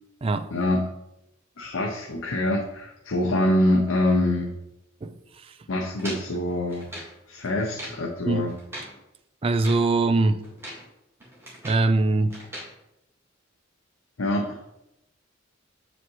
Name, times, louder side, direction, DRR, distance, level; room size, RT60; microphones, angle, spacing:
voice 1, 0.5-0.9 1.6-4.6 5.7-6.9 7.3-8.5 14.2-14.6, left 1 dB, 85° left, 0 dB, 0.7 m, -25 dB
sound 1, 6.0-7.2 7.6-8.0 8.5-9.0 9.4-9.9 10.4-10.9 11.2-11.9 12.3-12.7, equal, 15° right, 1.8 m, -40 dB
voice 2, 9.4-10.4 11.6-12.3, right 3 dB, 30° right, 9 dB, 0.3 m, -22 dB
7.2 x 5.0 x 3.1 m, 0.85 s
head